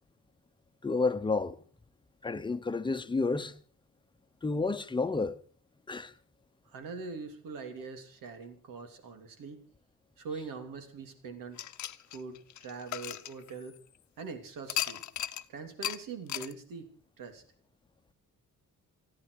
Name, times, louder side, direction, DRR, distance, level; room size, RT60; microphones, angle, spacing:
voice 1, 0.8-1.6 2.2-3.6 4.4-5.4 5.9-6.1, left 3 dB, 15° left, 0.9 m, -30 dB
voice 2, 6.6-9.6 10.2-11.6 12.1-13.8 14.2-15.0 15.5-16.9 17.2-17.4, right 4 dB, 90° right, 3.2 m, -42 dB
sound 1, 11.6-14.0 14.7-15.5 15.8-16.0 16.3-16.5, left 12 dB, 60° left, 0.9 m, -36 dB
29.0 x 9.9 x 4.8 m
cardioid pair, 150°, 32 cm